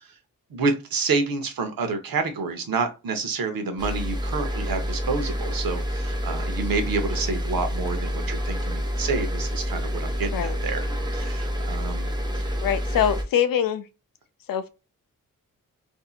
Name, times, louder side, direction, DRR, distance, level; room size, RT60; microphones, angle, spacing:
voice 1, 0.5-10.8 11.1-12.1 12.3-12.6, right 4 dB, 85° right, 0.8 m, -28 dB
sound 1, 3.8-13.2, equal, 15° right, 0.5 m, -28 dB
voice 2, 12.6-13.8 14.5-14.7, left 9 dB, 75° left, 0.5 m, -23 dB
2.7 x 2.5 x 2.4 m
wide cardioid pair, 110°, 34 cm